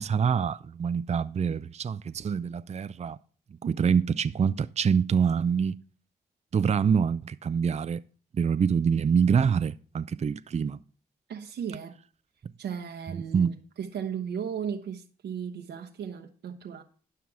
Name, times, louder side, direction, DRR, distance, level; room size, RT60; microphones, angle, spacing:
voice 1, 0.0-3.2 3.7-5.8 6.5-8.0 8.3-10.8 13.3-13.5, right 6 dB, 35° right, 0.5 m, -25 dB
voice 2, 11.3-12.0 12.6-16.8, right 7 dB, 70° right, 1.0 m, -36 dB
11.5 x 5.7 x 4.8 m
supercardioid pair, 45°, 18 cm